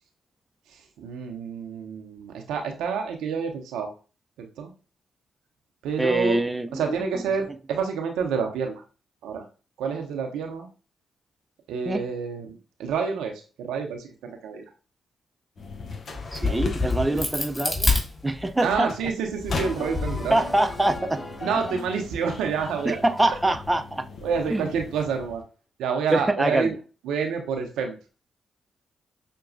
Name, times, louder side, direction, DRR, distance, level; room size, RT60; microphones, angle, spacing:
voice 1, 0.7-3.9 4.4-4.7 5.8-6.4 6.7-8.8 9.2-9.4 9.8-10.7 11.7-14.6 16.4-16.6 17.1-17.2 18.6-20.4 21.4-23.0 24.2-25.4 25.8-26.7 27.0-28.0, right 6 dB, 80° right, 3 dB, 0.7 m, -28 dB
voice 2, 6.0-7.0 11.9-12.0 16.3-18.9 20.3-21.2 22.9-24.0 24.5-24.7 26.1-26.7, right 1 dB, 15° right, 5 dB, 0.6 m, -24 dB
sound 1, 15.6-25.4, left 4 dB, 55° left, 0.7 m, -39 dB
Crack, 16.1-18.8 19.3-21.0, left 3 dB, 15° left, 2.1 m, -28 dB
sound 2, 19.5-23.9 24.2-24.6, left 1 dB, 40° left, 1.0 m, -39 dB
5.9 x 2.2 x 2.6 m, 0.34 s
hypercardioid pair, 45°, 0 cm